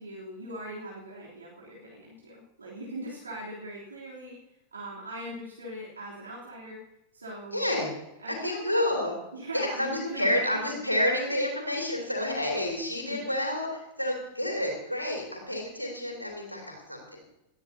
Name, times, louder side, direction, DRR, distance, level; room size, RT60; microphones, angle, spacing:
voice 1, 0.0-4.4 4.7-7.7 8.2-8.6 9.3-10.6 11.3-11.4 13.0-13.2, right 1 dB, 75° right, -4 dB, 3.2 m, -40 dB
voice 2, 7.5-7.9 8.3-9.1 9.5-17.2, left 1 dB, 85° left, -1 dB, 3.1 m, -29 dB
19.5 x 13.0 x 2.8 m, 0.90 s
figure-of-eight pair, 90°, 0 cm